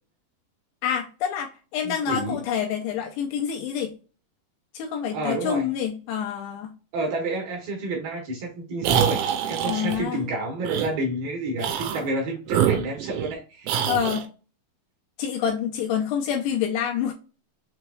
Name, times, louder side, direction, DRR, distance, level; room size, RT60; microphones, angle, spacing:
voice 1, 0.8-3.9 4.7-6.7 9.7-10.2 13.9-14.3 15.2-17.1, left 8 dB, 80° left, 2.5 m, -27 dB
voice 2, 1.8-2.4 5.1-5.7 6.9-13.8, right 2 dB, 65° right, 2.8 m, -29 dB
sound 1, 8.8-10.0 10.6-10.9 11.6-12.1 12.5-13.3 13.7-14.2, right 9 dB, 90° right, 3.0 m, -25 dB
6.9 x 3.2 x 2.2 m
omnidirectional pair, 5.2 m